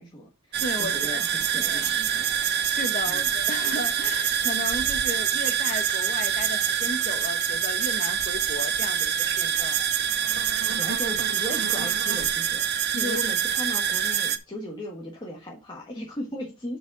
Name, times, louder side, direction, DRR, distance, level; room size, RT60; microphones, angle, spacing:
voice 1, 0.0-2.3 3.0-3.3 10.7-16.8, left 1 dB, 20° left, -2 dB, 1.5 m, -37 dB
sound 1, 0.5-14.4, right 9 dB, 50° right, 0.7 m, -25 dB
voice 2, 0.6-1.2 1.6-1.9 2.6-9.8 12.9-13.2, left 2 dB, 40° left, 7 dB, 1.2 m, -35 dB
6.9 x 5.2 x 4.8 m, 0.28 s
head